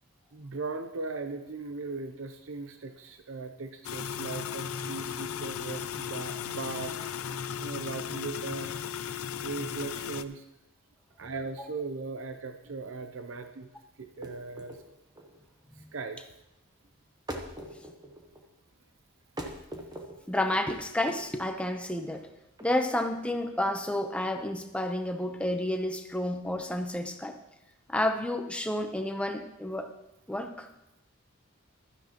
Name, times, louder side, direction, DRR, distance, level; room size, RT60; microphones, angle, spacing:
voice 1, 0.3-7.0 7.3-10.4 11.2-13.7 14.0-14.8 15.7-16.2 20.1-20.3, right 4 dB, 65° right, 7 dB, 0.6 m, -38 dB
sound 1, 3.8-10.2, left 8 dB, 80° left, 0.5 m, -36 dB
sound 2, 14.1-27.0, right 1 dB, 20° right, 1.1 m, -45 dB
voice 2, 20.3-22.3 22.6-27.4 27.9-29.9 30.3-30.7, left 1 dB, 5° left, 5 dB, 0.8 m, -30 dB
15.5 x 12.5 x 3.0 m, 0.89 s
head